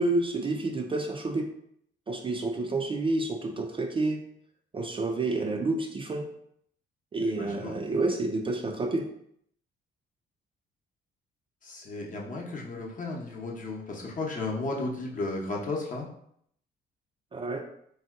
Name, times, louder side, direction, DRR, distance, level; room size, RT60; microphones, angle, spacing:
voice 1, 0.0-1.5 2.1-4.2 4.7-6.3 7.1-9.1 17.3-17.6, right 2 dB, 25° right, 2 dB, 0.3 m, -29 dB
voice 2, 7.4-7.7 11.6-16.1, left 2 dB, 40° left, -1 dB, 0.8 m, -34 dB
2.7 x 2.2 x 3.5 m, 0.69 s
cardioid pair, 90°, 20 cm